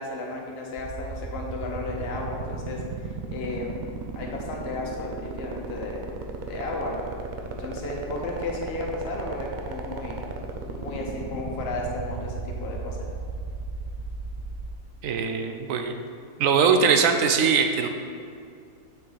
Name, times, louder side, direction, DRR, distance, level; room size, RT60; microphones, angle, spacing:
voice 1, 0.0-3.8 4.1-6.0 6.4-7.1 7.5-10.2 10.7-13.1, left 2 dB, 50° left, -1 dB, 1.0 m, -34 dB
sound 1, 0.7-14.7, right 5 dB, 90° right, 0.4 m, -34 dB
voice 2, 15.0-16.0 16.4-17.9, right 6 dB, 75° right, 6 dB, 1.0 m, -21 dB
9.1 x 3.9 x 3.9 m, 2.3 s
omnidirectional pair, 1.5 m